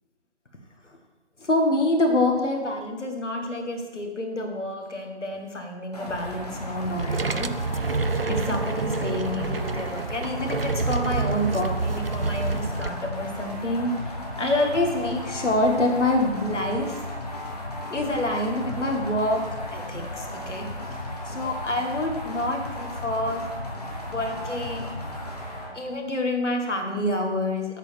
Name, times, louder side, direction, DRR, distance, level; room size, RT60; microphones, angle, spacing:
voice 1, 1.4-7.8 8.3-13.9 14.4-17.0 17.9-20.7 21.3-23.5 24.1-25.0 25.7-27.8, left 1 dB, 85° left, 3 dB, 2.1 m, -27 dB
sound 1, 5.9-25.7, left 1 dB, 35° left, 1.5 m, -35 dB
sound 2, 6.9-12.9, right 4 dB, 55° right, 0.5 m, -28 dB
13.0 x 8.2 x 3.6 m, 1.3 s
figure-of-eight pair, 180°, 35 cm